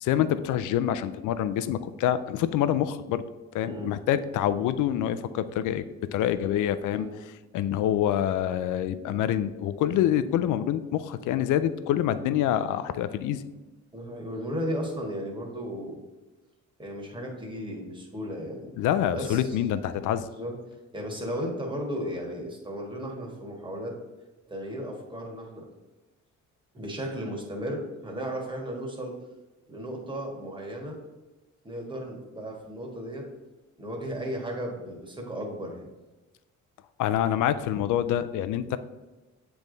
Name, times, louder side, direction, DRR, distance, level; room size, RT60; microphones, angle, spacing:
voice 1, 0.0-3.2 3.5-5.9 6.1-7.1 7.5-13.4 18.8-20.2 37.0-38.8, left 11 dB, 85° left, 13 dB, 0.5 m, -26 dB
voice 2, 3.7-4.0 6.3-6.6 6.9-7.1 13.9-16.0 16.8-18.7 19.1-19.6 20.3-20.6 20.9-23.9 24.5-25.7 26.7-29.1 29.7-31.0 31.6-33.3 33.8-35.9, equal, 15° right, -1 dB, 1.7 m, -35 dB
7.3 x 3.4 x 3.9 m, 1.1 s
cardioid pair, 90°, 30 cm